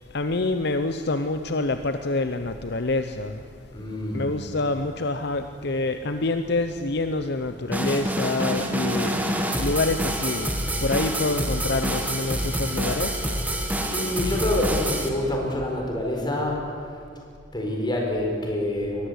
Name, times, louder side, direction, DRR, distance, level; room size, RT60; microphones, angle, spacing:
voice 1, 0.1-3.4 4.1-9.2 9.6-10.5 10.8-13.2, left 2 dB, 60° left, 8 dB, 0.8 m, -26 dB
voice 2, 3.7-4.3 5.6-5.8 6.2-6.3 6.7-7.3 13.6-17.0 17.5-19.1, left 1 dB, 25° left, 0 dB, 4.3 m, -28 dB
sound 1, 7.7-15.1, right 1 dB, 10° right, 1.8 m, -27 dB
22.0 x 18.5 x 8.2 m, 2.3 s
head